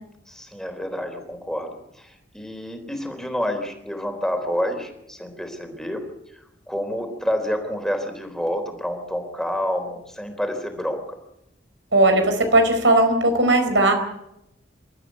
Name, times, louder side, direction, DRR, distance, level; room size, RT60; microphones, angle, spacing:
voice 1, 0.3-6.0 6.7-11.0, equal, 5° left, 5 dB, 3.8 m, -28 dB
voice 2, 11.9-13.9, right 1 dB, 85° right, 6 dB, 4.8 m, -17 dB
28.0 x 13.5 x 8.3 m, 0.82 s
head